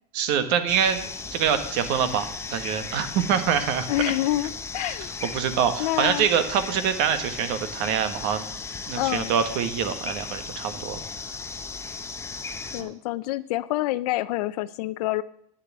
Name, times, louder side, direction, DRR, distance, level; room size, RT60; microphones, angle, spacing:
voice 1, 0.1-1.0 1.3-4.1 4.8-4.9 5.2-8.4 8.9-11.0 12.8-12.9, right 8 dB, 55° right, 9 dB, 1.5 m, -25 dB
sound 1, 0.7-12.8, left 4 dB, 15° left, 0.8 m, -36 dB
voice 2, 3.9-5.4 5.8-6.3 9.0-9.4 12.7-15.2, left 16 dB, 70° left, 17 dB, 0.6 m, -27 dB
9.8 x 6.7 x 7.6 m, 0.69 s
supercardioid pair, 120°, 20 cm